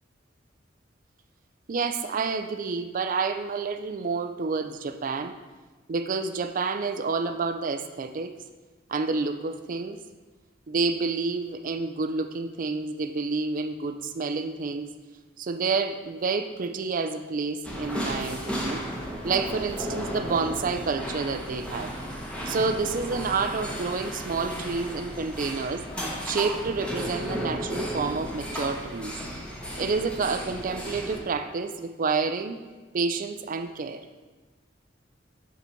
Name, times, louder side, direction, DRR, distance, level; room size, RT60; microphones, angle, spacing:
voice 1, 1.7-5.3 5.9-8.3 8.9-10.0 10.7-14.9 15.4-18.9 19.2-21.9 22.5-25.8 26.2-29.1 29.8-32.6 32.9-34.0, right 4 dB, 45° right, 8 dB, 0.4 m, -29 dB
sound 1, 17.6-31.2, equal, 5° left, 0.9 m, -34 dB
7.1 x 4.0 x 4.5 m, 1.3 s
head